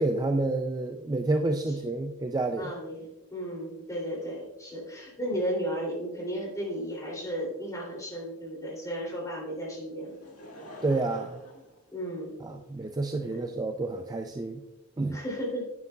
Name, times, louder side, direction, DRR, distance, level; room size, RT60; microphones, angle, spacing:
voice 1, 0.0-2.7 10.8-11.4 12.4-14.6 15.0-15.2, right 2 dB, 20° right, 5 dB, 0.4 m, -29 dB
voice 2, 2.6-10.1 11.9-12.3 13.2-13.3 15.1-15.7, equal, 15° left, -2 dB, 2.8 m, -34 dB
Laughter / Crowd, 10.0-12.7 13.4-13.5, left 1 dB, 80° left, 1.8 m, -48 dB
9.7 x 9.4 x 2.3 m, 1.0 s
head